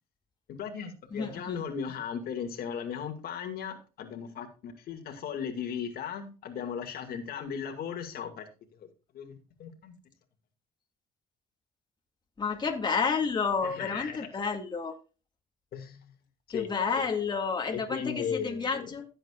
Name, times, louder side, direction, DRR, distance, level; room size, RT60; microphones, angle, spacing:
voice 1, 0.5-8.5 8.8-8.9 9.1-9.9 13.6-14.3 15.7-16.1 16.5-17.1 17.7-18.9, left 7 dB, 65° left, 5 dB, 2.1 m, -37 dB
voice 2, 1.1-1.6 12.4-14.9 16.5-19.1, left 5 dB, 25° left, 1 dB, 2.1 m, -30 dB
16.0 x 7.8 x 2.4 m, 0.33 s
cardioid pair, 110°, 17 cm